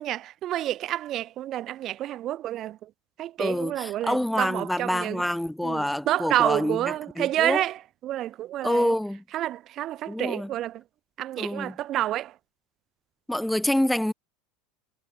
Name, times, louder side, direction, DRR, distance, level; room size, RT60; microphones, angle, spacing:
voice 1, 0.0-2.8 3.2-5.2 5.6-7.8 8.0-8.9 9.3-10.8 11.2-12.3, right 13 dB, 45° right, 1.2 m, -29 dB
voice 2, 3.4-7.6 8.6-9.2 10.1-10.5 11.4-11.8 13.3-14.1, left 1 dB, 5° left, 3.2 m, -27 dB
supercardioid pair, 105°, 0 cm